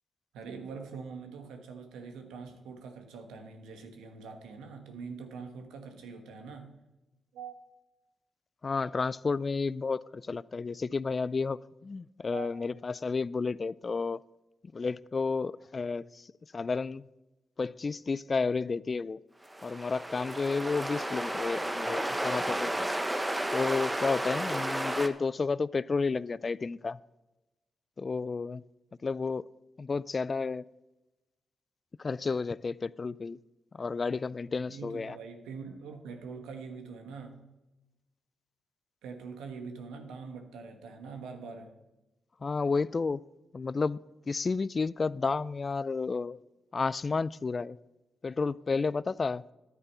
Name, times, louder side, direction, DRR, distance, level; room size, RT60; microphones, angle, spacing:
voice 1, 0.3-6.7 7.3-7.6 12.3-12.7 34.6-37.4 39.0-41.7, right 5 dB, 90° right, 6 dB, 1.3 m, -44 dB
voice 2, 8.6-14.2 14.7-16.3 16.5-17.0 17.6-19.2 19.6-22.9 23.5-27.0 28.0-28.6 29.0-29.4 29.8-30.6 32.0-33.4 33.7-35.2 42.4-43.2 43.5-44.0 44.3-46.4 46.7-47.8 48.2-49.4, left 4 dB, 45° left, 20 dB, 0.3 m, -31 dB
sound 1, 19.5-25.1, right 1 dB, 15° right, 1.1 m, -32 dB
10.5 x 8.6 x 5.5 m, 1.0 s
supercardioid pair, 55°, 0 cm